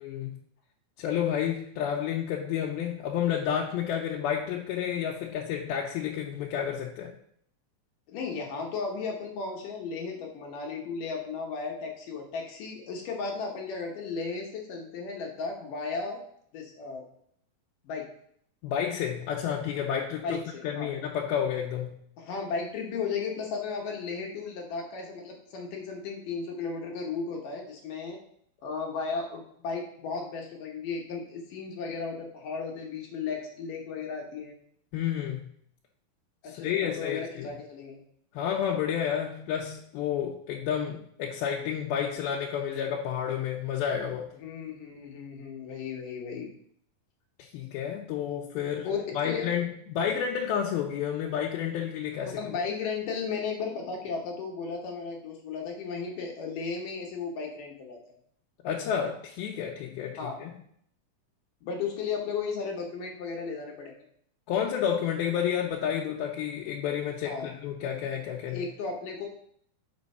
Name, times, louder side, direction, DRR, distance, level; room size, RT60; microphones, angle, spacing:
voice 1, 0.0-0.4 1.0-7.1 18.6-22.0 34.9-35.4 36.4-37.6 38.3-44.3 47.4-48.9 49.1-52.4 58.6-60.6 64.5-68.7, left 8 dB, 85° left, -1 dB, 2.5 m, -30 dB
voice 2, 8.1-16.2 16.5-17.0 17.8-18.1 20.2-20.9 22.2-28.2 28.6-34.5 36.4-38.0 44.4-46.5 48.8-49.0 49.2-49.4 52.4-58.0 60.2-60.4 61.6-63.9 67.3-67.5 68.5-69.3, left 5 dB, 70° left, 0 dB, 2.4 m, -35 dB
6.2 x 5.2 x 5.3 m, 0.67 s
omnidirectional pair, 4.3 m